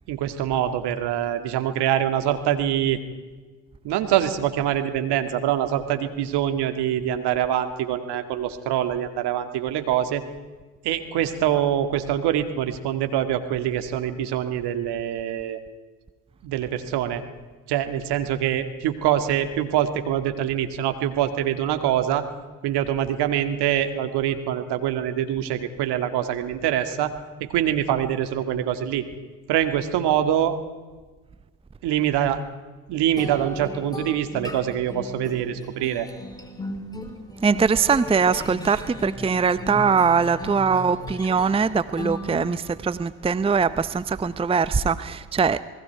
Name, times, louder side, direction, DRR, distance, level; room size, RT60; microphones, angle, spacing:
voice 1, 0.1-3.0 3.8-10.2 10.8-15.6 16.4-17.2 17.7-22.3 22.6-27.1 27.4-29.0 29.5-30.6 31.8-32.4 32.9-36.1, right 10 dB, 60° right, 8 dB, 2.1 m, -24 dB
sound 1, 33.2-42.8, left 1 dB, 10° left, 3.8 m, -36 dB
voice 2, 37.4-45.6, right 5 dB, 15° right, 15 dB, 0.7 m, -22 dB
28.5 x 20.5 x 4.7 m, 1.3 s
hypercardioid pair, 60°, 44 cm